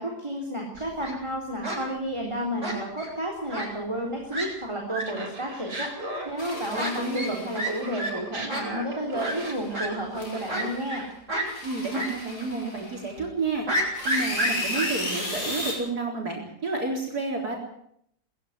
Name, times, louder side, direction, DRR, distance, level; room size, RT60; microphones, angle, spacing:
voice 1, 0.0-11.0, equal, 15° right, 0 dB, 3.8 m, -31 dB
Fowl, 0.7-1.2 1.6-1.8 2.6-3.1 3.5-3.7 4.0-4.1 4.3-4.5 4.9-5.0 5.7-5.9 6.7-6.9 7.2-7.3 7.5-7.7 8.0-8.1 8.5-8.6 9.2-9.3 9.7-9.9 10.5-11.0 11.3-11.5 11.9-12.1 12.4-12.5 13.7-14.9, right 1 dB, 50° right, 8.4 m, -29 dB
Laughter, 5.0-7.3 7.6-10.8, right 1 dB, 85° right, 5.0 m, -38 dB
sound 1, 6.4-8.0 9.1-9.8 10.1-11.0 11.4-13.2 13.9-15.7, left 1 dB, 75° left, 7.4 m, -35 dB
voice 2, 6.7-7.5 11.6-17.6, right 3 dB, 70° right, 0 dB, 4.7 m, -31 dB
20.0 x 15.5 x 9.6 m, 0.71 s
omnidirectional pair, 1.7 m